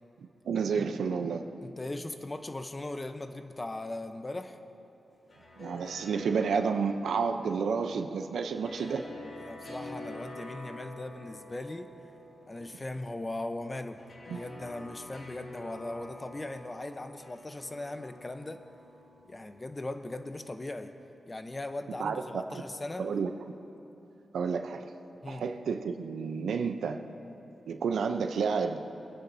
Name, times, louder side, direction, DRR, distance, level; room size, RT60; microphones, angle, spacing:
voice 1, 0.5-1.4 5.6-9.0 14.3-14.4 22.0-22.2 22.5-22.6 23.0-23.3 24.3-24.9 25.3-27.0 27.7-28.8, right 5 dB, 90° right, 6 dB, 0.6 m, -30 dB
voice 2, 1.6-4.6 9.4-11.9 12.5-14.0 14.3-18.6 19.3-20.9 21.3-23.1 25.2-25.4, left 2 dB, 25° left, 8 dB, 0.7 m, -39 dB
sound 1, 5.1-20.3, left 2 dB, 55° left, 2.4 m, -48 dB
24.0 x 10.0 x 2.7 m, 2.9 s
cardioid pair, 75°, 0 cm